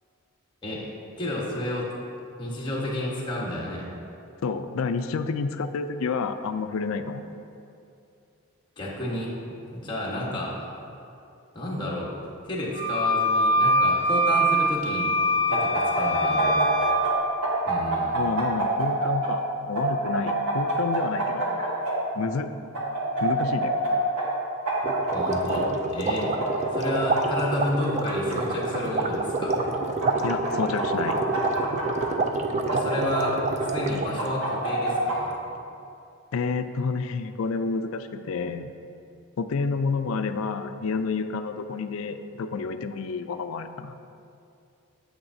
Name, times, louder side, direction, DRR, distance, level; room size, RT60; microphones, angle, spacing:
voice 1, 1.2-1.9 2.4-3.9 8.8-9.3 9.7-10.5 11.5-12.1 12.4-15.1 15.5-17.1 17.6-18.2 25.1-26.3 26.7-29.6 32.7-33.4 33.7-35.3, left 1 dB, 20° left, -5 dB, 1.3 m, -31 dB
voice 2, 4.4-7.2 18.1-21.4 22.1-22.5 23.2-23.8 30.2-31.2 36.3-38.7 39.4-43.9, left 4 dB, 65° left, 9 dB, 0.4 m, -29 dB
Wind instrument woodwind instrument, 12.7-17.0, equal, 40° left, 1.3 m, -23 dB
sound 1, 15.5-17.1 17.4-19.3 19.8-21.9 22.7-23.9 24.2-24.3 24.7-25.6 26.2-27.2 27.8-28.8 29.6-30.5 30.8-32.1 32.7-33.7 34.2-35.2, right 2 dB, 85° right, 1.6 m, -27 dB
sound 2, 24.8-34.3, right 3 dB, 30° right, 0.4 m, -28 dB
8.8 x 7.6 x 2.7 m, 2.6 s
head